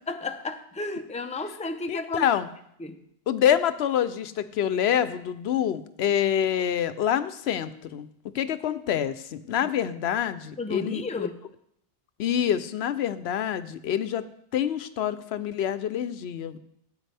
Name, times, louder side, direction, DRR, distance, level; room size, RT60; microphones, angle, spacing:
voice 1, 0.1-2.3 2.8-3.0 9.6-9.7 10.6-11.3, left 3 dB, 10° left, 7 dB, 0.6 m, -33 dB
voice 2, 1.9-2.5 3.3-8.1 8.3-11.3 12.2-14.2 14.5-16.6, left 9 dB, 85° left, 14 dB, 0.8 m, -26 dB
13.5 x 8.8 x 3.4 m, 0.74 s
omnidirectional pair, 1.1 m